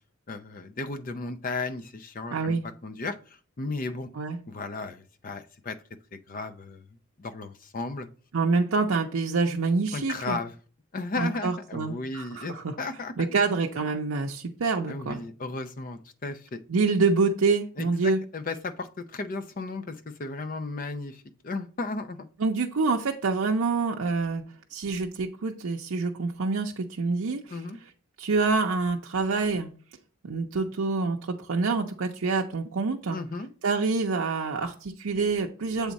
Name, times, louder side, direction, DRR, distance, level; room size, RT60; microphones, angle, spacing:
voice 1, 0.3-4.1 4.5-5.8 6.1-6.8 7.2-8.1 9.9-10.5 10.9-13.4 14.9-16.6 17.8-22.3 27.5-27.8 33.1-33.5, left 3 dB, 40° left, 11 dB, 0.5 m, -35 dB
voice 2, 2.3-2.6 4.2-4.4 8.3-10.4 11.2-12.7 13.2-15.2 16.7-18.2 22.4-24.4 24.7-27.4 28.2-29.7 30.2-33.2 33.6-35.9, right 4 dB, 85° right, 1 dB, 0.6 m, -26 dB
7.4 x 3.5 x 4.0 m, 0.39 s
head